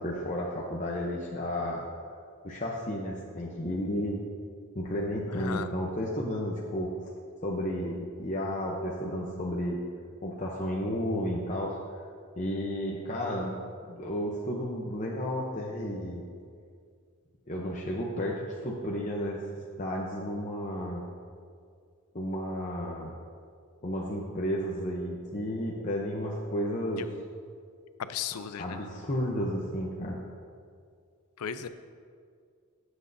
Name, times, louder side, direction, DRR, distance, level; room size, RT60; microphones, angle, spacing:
voice 1, 0.0-1.8 2.4-4.2 4.7-6.9 7.4-9.8 10.2-11.8 12.4-13.5 13.8-16.2 17.5-19.5 19.8-21.0 22.1-23.1 23.8-27.1 28.3-30.2, equal, 35° left, -2 dB, 0.8 m, -32 dB
voice 2, 5.3-5.7 28.0-28.8 31.4-31.7, left 7 dB, 90° left, 12 dB, 0.5 m, -35 dB
15.0 x 8.0 x 2.7 m, 2.2 s
head